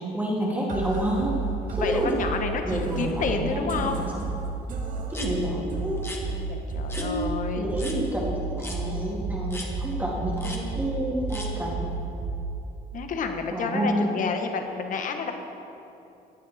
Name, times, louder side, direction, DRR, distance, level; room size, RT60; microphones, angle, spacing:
voice 1, 0.0-1.5 1.8-2.1 2.6-4.2 5.1-6.0 7.0-7.2 7.5-11.9 13.5-14.0, equal, 10° right, -5 dB, 2.3 m, -29 dB
sound 1, 0.7-12.7, right 4 dB, 50° right, 1.7 m, -32 dB
voice 2, 1.8-4.1 6.3-7.7 12.9-15.3, left 5 dB, 50° left, 5 dB, 1.4 m, -30 dB
sound 2, 5.1-5.3 6.0-6.2 6.9-7.1 7.8-8.0 8.6-8.8 9.5-9.7 10.4-10.6 11.3-11.5, left 2 dB, 15° left, 1.7 m, -37 dB
17.0 x 9.4 x 4.3 m, 2.9 s
cardioid pair, 110°, 17 cm